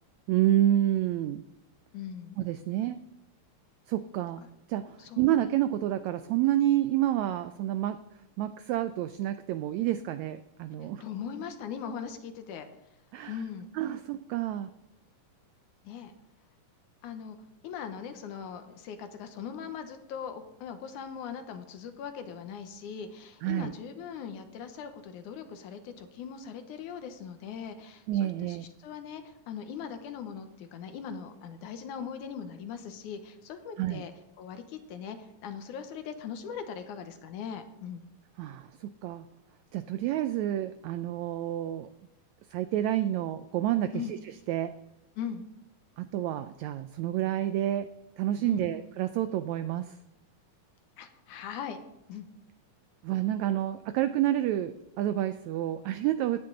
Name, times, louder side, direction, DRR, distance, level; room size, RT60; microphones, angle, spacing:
voice 1, 0.3-1.4 2.4-3.0 3.9-4.4 4.7-8.0 8.4-11.0 13.1-13.4 13.7-14.7 23.4-23.7 28.1-28.7 33.8-34.0 38.4-39.3 39.7-41.9 42.5-44.2 44.5-44.7 46.0-47.9 48.2-50.0 53.0-56.4, right 12 dB, 85° right, 11 dB, 1.6 m, -29 dB
voice 2, 1.9-2.4 5.0-5.2 10.8-12.7 13.3-13.7 15.8-16.1 17.0-17.4 17.6-34.1 34.4-38.0 43.9-44.1 45.2-45.5 48.4-48.8 51.0-51.8 52.1-52.3, left 7 dB, 75° left, 8 dB, 2.3 m, -40 dB
17.0 x 9.6 x 3.9 m, 0.88 s
omnidirectional pair, 3.8 m